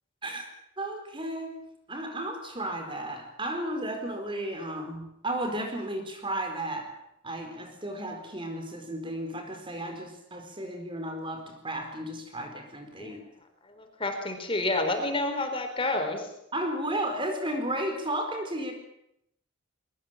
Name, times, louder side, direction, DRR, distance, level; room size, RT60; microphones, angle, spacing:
voice 1, 0.8-1.6 1.9-6.9 7.2-13.2 16.5-18.7, right 1 dB, 25° right, 5 dB, 4.4 m, -33 dB
voice 2, 14.0-16.3, left 2 dB, 25° left, 6 dB, 3.7 m, -29 dB
22.5 x 22.0 x 7.5 m, 0.76 s
head